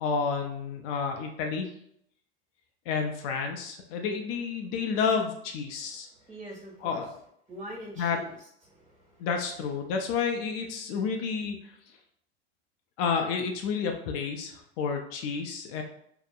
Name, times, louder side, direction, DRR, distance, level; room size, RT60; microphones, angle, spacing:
voice 1, 0.0-1.7 2.9-6.1 6.8-7.1 8.0-8.2 9.2-11.7 13.0-15.8, left 5 dB, 60° left, 3 dB, 0.5 m, -30 dB
voice 2, 5.7-7.2 7.5-9.6, right 1 dB, 20° right, -5 dB, 1.5 m, -45 dB
2.7 x 2.0 x 2.4 m, 0.70 s
hypercardioid pair, 95°, 32 cm